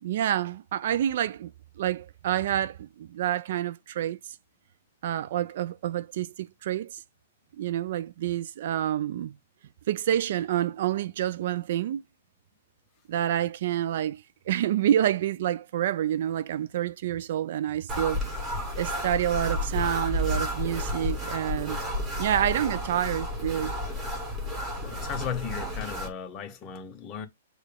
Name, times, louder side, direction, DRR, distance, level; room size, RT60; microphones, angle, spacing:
voice 1, 0.0-4.2 5.0-7.0 7.6-9.4 9.9-12.0 13.1-18.2 18.8-21.8 22.2-23.7, right 11 dB, 60° right, 0.3 m, -28 dB
sound 1, 17.9-26.1, left 1 dB, 15° right, 1.3 m, -31 dB
voice 2, 24.8-27.3, left 7 dB, 30° left, 0.9 m, -36 dB
6.5 x 2.3 x 3.4 m
hypercardioid pair, 135°, 0 cm